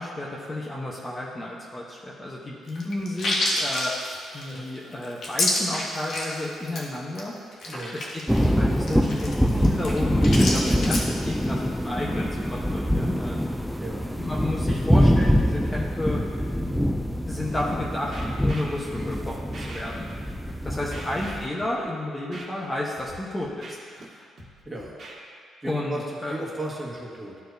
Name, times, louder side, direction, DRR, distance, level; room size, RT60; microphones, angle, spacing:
voice 1, 0.0-3.9 4.3-7.3 7.9-8.2 8.5-13.4 14.1-16.2 17.2-20.1 20.6-24.3 25.6-26.3, left 1 dB, 20° left, -4 dB, 1.0 m, -32 dB
sound 1, 2.7-6.4 6.7-6.8 7.2-7.3 7.5-11.1, left 2 dB, 60° left, 1.3 m, -28 dB
sound 2, 8.3-21.5, equal, ahead, 0.4 m, -24 dB
voice 2, 13.8-14.1 20.9-21.0 24.6-24.9 25.6-26.0 26.3-27.3, right 1 dB, 15° right, -4 dB, 1.6 m, -35 dB
Scratching (performance technique), 17.5-17.6 18.1-19.0 19.5-19.8 20.1-20.5 20.9-21.8 22.3-22.4 23.0-23.2 23.4-24.0 24.4-25.1, right 2 dB, 50° right, 1.6 m, -42 dB
12.5 x 4.6 x 2.7 m, 2.2 s
cardioid pair, 90°, 0 cm